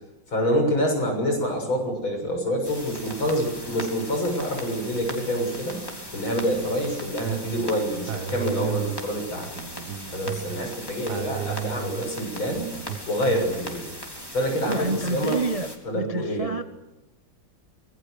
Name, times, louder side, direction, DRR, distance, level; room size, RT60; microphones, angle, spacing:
voice 1, 0.3-5.8 6.1-9.5 10.1-12.7 13.1-13.9 14.3-15.5 15.8-16.5, equal, 85° left, 3 dB, 7.8 m, -26 dB
sound 1, 2.6-15.8, left 1 dB, 10° left, 3.7 m, -39 dB
sound 2, 6.1-7.6 8.1-10.6 11.1-13.4, right 11 dB, 55° right, 1.5 m, -35 dB
voice 2, 14.7-16.6, right 3 dB, 35° right, 9 dB, 0.6 m, -28 dB
26.5 x 20.5 x 6.7 m, 0.99 s
omnidirectional pair, 2.2 m